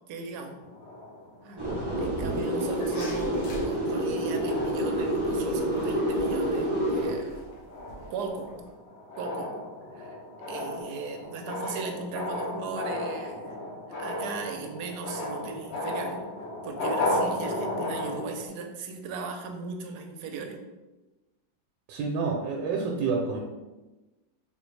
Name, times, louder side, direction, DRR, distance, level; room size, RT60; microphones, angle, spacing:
voice 1, 0.1-0.6 1.4-1.7 2.0-7.4 8.1-8.5 9.2-9.5 9.9-13.6 14.0-16.2 16.6-20.6, right 4 dB, 70° right, 4 dB, 1.1 m, -37 dB
sound 1, 0.6-2.5 3.1-3.3 3.7-4.0 4.4-5.7 6.2-6.5 6.9-18.5, left 1 dB, 65° left, 0.6 m, -34 dB
sound 2, 1.6-7.1, right 1 dB, 35° right, 0.4 m, -28 dB
sound 3, 2.1-8.7, equal, 80° left, 1.6 m, -45 dB
voice 2, 21.9-23.4, right 4 dB, 85° right, 0 dB, 1.3 m, -29 dB
3.8 x 3.3 x 3.1 m, 1.1 s
omnidirectional pair, 2.0 m